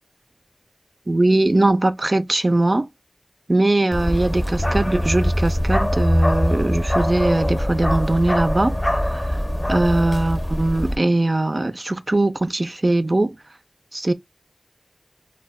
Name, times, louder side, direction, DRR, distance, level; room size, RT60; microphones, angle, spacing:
voice 1, 1.1-2.9 3.5-9.3 9.7-13.3 13.9-14.1, right 2 dB, 55° right, 0.3 m, -20 dB
Bark, 3.9-11.0, equal, 30° left, 0.6 m, -22 dB
2.1 x 2.1 x 3.4 m
wide cardioid pair, 45°, 0 cm